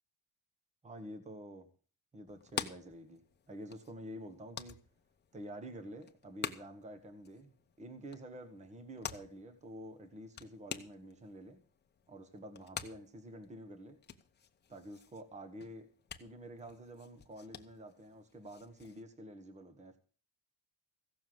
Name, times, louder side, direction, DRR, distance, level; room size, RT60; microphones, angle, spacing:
voice 1, 0.8-1.7 2.1-4.8 5.3-11.6 12.1-14.0 14.7-15.9 16.2-20.0, right 1 dB, 20° right, 1.4 m, -49 dB
sound 1, 2.3-19.0, left 7 dB, 30° left, 1.1 m, -49 dB
15.5 x 7.0 x 7.8 m
cardioid pair, 125°, 37 cm